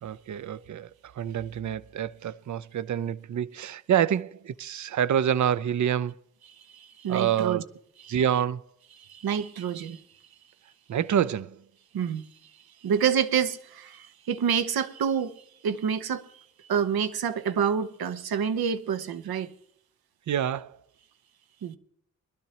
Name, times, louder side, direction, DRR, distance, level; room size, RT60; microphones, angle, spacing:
voice 1, 0.0-0.9 1.2-6.1 7.1-7.6 8.1-8.6 10.9-11.6 20.3-20.8, right 9 dB, 55° right, 0.5 m, -27 dB
voice 2, 6.7-7.6 8.0-8.2 9.0-10.0 11.9-12.3 12.8-15.3 15.6-16.4 16.7-19.5 21.6-21.8, right 7 dB, 80° right, 0.9 m, -28 dB
21.0 x 12.0 x 2.9 m
cardioid pair, 45°, 36 cm